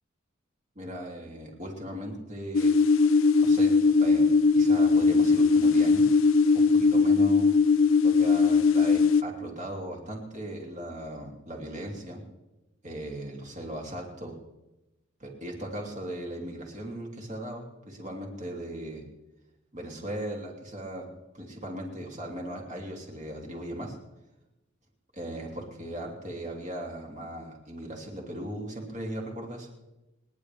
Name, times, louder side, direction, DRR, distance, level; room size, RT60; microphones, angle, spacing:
voice 1, 0.7-2.7 3.4-6.1 6.5-7.5 8.0-12.2 12.8-14.4 15.2-19.0 19.7-21.0 21.3-24.0 25.2-29.7, right 1 dB, 35° right, 0 dB, 2.9 m, -38 dB
sound 1, 2.5-9.2, left 4 dB, 65° left, 0.5 m, -20 dB
28.0 x 10.5 x 3.5 m, 0.99 s
head